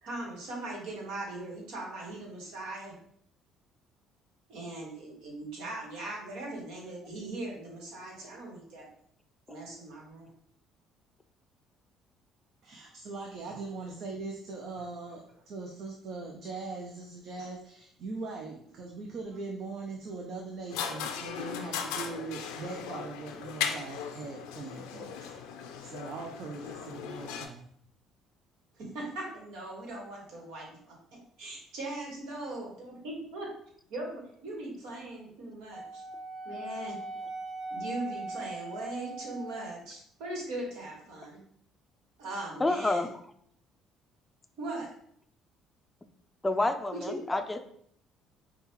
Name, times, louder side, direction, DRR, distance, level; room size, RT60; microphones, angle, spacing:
voice 1, 0.0-2.9 4.5-8.9 9.5-10.3 13.5-13.6 28.8-31.0 31.4-33.5 33.9-36.0 36.4-36.9 37.7-41.4 42.2-43.1 44.6-44.9 47.1-47.2, right 2 dB, 80° right, -1 dB, 1.4 m, -40 dB
voice 2, 12.6-25.3 25.8-27.7, right 3 dB, 65° right, 2 dB, 0.5 m, -41 dB
sound 1, 20.7-27.5, left 7 dB, 85° left, 0.4 m, -37 dB
Wind instrument woodwind instrument, 35.7-39.9, right 2 dB, 15° right, 0.9 m, -40 dB
voice 3, 42.6-43.1 46.4-47.6, left 2 dB, 15° left, 8 dB, 0.4 m, -28 dB
5.3 x 2.3 x 3.0 m, 0.66 s
supercardioid pair, 80°, 0 cm